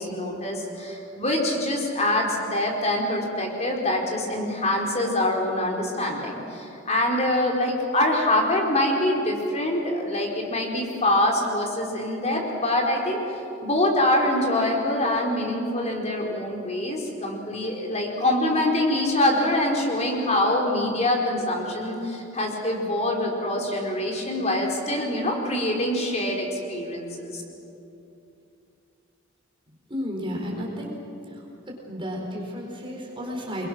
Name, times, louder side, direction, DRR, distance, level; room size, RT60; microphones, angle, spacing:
voice 1, 0.0-27.4, left 1 dB, 35° left, 0 dB, 4.3 m, -25 dB
voice 2, 29.9-30.9 31.3-33.7, equal, 25° right, -2 dB, 4.6 m, -33 dB
28.5 x 22.5 x 6.4 m, 2.8 s
head